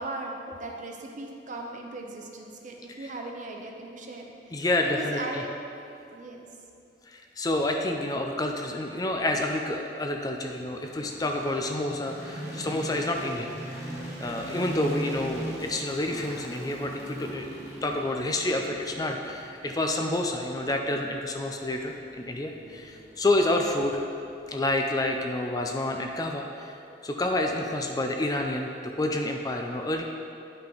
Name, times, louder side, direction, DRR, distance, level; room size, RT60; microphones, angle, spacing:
voice 1, 0.0-4.3 4.5-5.5 6.1-6.5, right 2 dB, 45° right, 1 dB, 0.8 m, -38 dB
voice 2, 4.5-5.4 7.1-13.8 14.2-17.5 17.8-24.1 24.5-26.8 27.0-30.0, left 1 dB, 20° left, 3 dB, 0.4 m, -29 dB
sound 1, 10.5-24.6, right 1 dB, 15° right, 1.4 m, -40 dB
10.0 x 5.6 x 3.9 m, 2.6 s
head